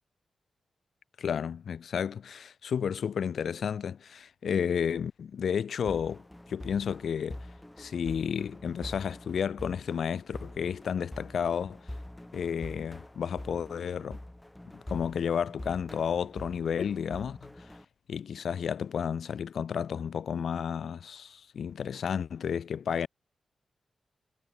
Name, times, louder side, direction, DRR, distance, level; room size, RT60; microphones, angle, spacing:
voice 1, 1.2-6.2 6.5-7.5 7.8-11.9 12.3-14.2 14.9-17.5 18.1-23.1, left 7 dB, 80° left, 0.5 m, -32 dB
sound 1, 5.9-17.8, left 1 dB, 10° left, 0.4 m, -45 dB
wide cardioid pair, 130°, 0 cm